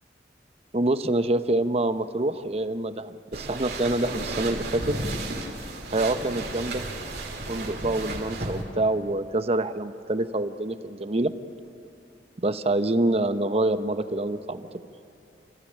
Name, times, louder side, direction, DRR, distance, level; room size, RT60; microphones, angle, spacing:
voice 1, 0.7-5.0 5.9-6.8 7.5-11.3 12.4-14.7, right 2 dB, 35° right, 11 dB, 0.8 m, -26 dB
sound 1, 3.3-8.6, right 2 dB, 65° right, 3.3 m, -33 dB
29.0 x 15.5 x 8.7 m, 2.6 s
head